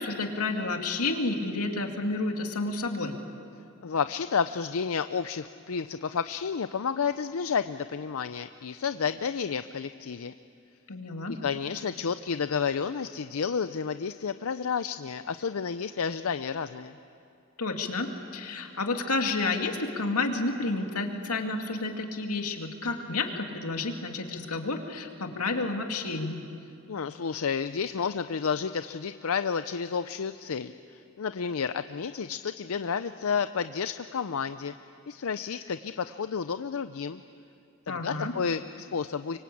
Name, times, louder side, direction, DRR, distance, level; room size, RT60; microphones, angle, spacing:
voice 1, 0.0-3.2 10.9-11.4 17.6-26.4 37.9-38.3, left 3 dB, 85° left, 4 dB, 2.4 m, -30 dB
voice 2, 3.8-10.3 11.3-16.9 26.9-34.7 35.1-37.2 37.9-39.4, left 6 dB, 70° left, 11 dB, 0.5 m, -31 dB
25.0 x 24.0 x 8.5 m, 2.5 s
head